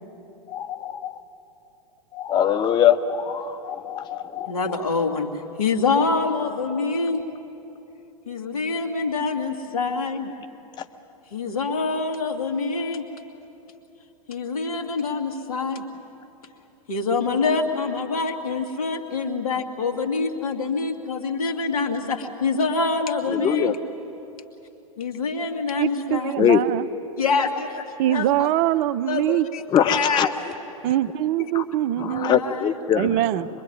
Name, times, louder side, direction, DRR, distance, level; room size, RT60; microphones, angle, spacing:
voice 1, 0.5-1.2 2.1-4.7 23.3-23.8 26.4-26.6 29.7-30.3 31.5-31.6 32.0-33.2, left 9 dB, 25° left, 9 dB, 0.9 m, -22 dB
voice 2, 4.5-5.3 5.6-7.3 8.3-10.3 11.3-13.1 14.3-15.8 16.9-23.8 25.0-26.3 27.2-28.5 29.1-30.3 31.4-31.5 32.1-32.7, left 4 dB, 70° left, 5 dB, 2.5 m, -25 dB
voice 3, 25.8-26.9 28.0-29.5 30.8-32.4 32.9-33.5, right 13 dB, 40° right, 16 dB, 0.6 m, -23 dB
24.5 x 22.5 x 9.3 m, 3.0 s
figure-of-eight pair, 100°, 19 cm